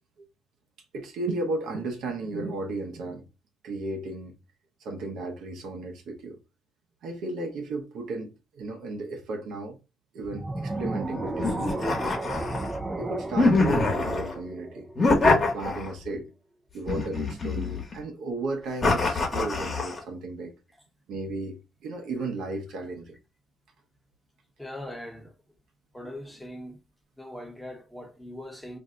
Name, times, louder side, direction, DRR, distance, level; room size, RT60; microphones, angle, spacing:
voice 1, 0.9-3.2 3.6-4.3 4.8-6.4 7.0-8.3 8.6-9.8 10.1-12.0 13.0-16.3 16.7-20.5 21.1-23.2, right 2 dB, 80° right, 0.8 m, -34 dB
sound 1, 10.2-15.5, right 2 dB, 20° right, 0.4 m, -33 dB
sound 2, 11.4-12.8 13.4-14.3 15.0-16.1 16.9-18.0 18.8-20.0, left 3 dB, 35° left, 1.1 m, -24 dB
voice 2, 24.6-25.3 25.9-26.8 27.2-28.8, left 1 dB, 5° left, 0.9 m, -40 dB
2.7 x 2.2 x 3.8 m
cardioid pair, 90°, 0 cm